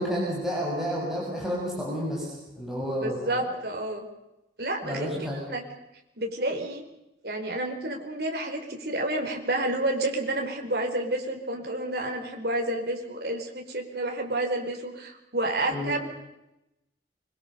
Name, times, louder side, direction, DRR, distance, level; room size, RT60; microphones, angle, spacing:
voice 1, 0.0-3.4 4.8-5.4 15.7-15.9, equal, ahead, -5 dB, 7.0 m, -30 dB
voice 2, 3.0-4.1 4.6-5.6 6.2-6.8 7.2-16.1, right 1 dB, 60° right, 2 dB, 4.7 m, -30 dB
24.5 x 23.0 x 6.9 m, 0.90 s
head